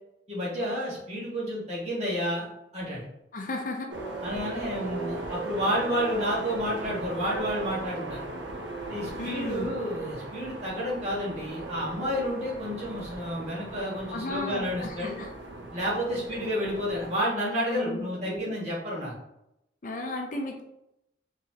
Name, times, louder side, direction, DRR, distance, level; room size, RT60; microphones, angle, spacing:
voice 1, 0.3-2.5 2.7-3.0 4.2-8.2 8.9-15.1 15.7-19.1, equal, 35° right, -6 dB, 1.5 m, -30 dB
voice 2, 3.3-3.9 9.2-9.7 14.1-15.3 17.7-18.6 19.8-20.6, left 2 dB, 45° left, 3 dB, 0.5 m, -34 dB
sound 1, 3.9-17.2, right 2 dB, 80° right, 0.7 m, -37 dB
3.9 x 3.0 x 2.9 m, 0.83 s
head